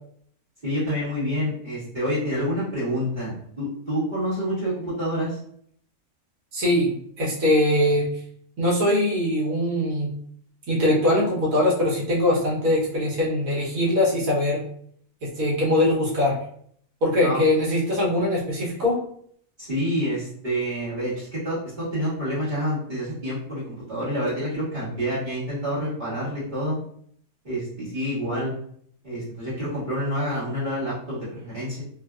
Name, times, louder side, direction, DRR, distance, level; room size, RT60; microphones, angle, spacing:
voice 1, 0.6-5.4 17.2-17.4 19.6-26.8 27.4-28.5 29.0-31.8, equal, 30° right, -11 dB, 1.6 m, -28 dB
voice 2, 6.5-8.1 8.6-10.1 10.7-14.6 15.2-16.4 17.0-18.9, left 1 dB, 65° right, -4 dB, 1.4 m, -22 dB
3.1 x 2.5 x 2.3 m, 0.63 s
omnidirectional pair, 1.6 m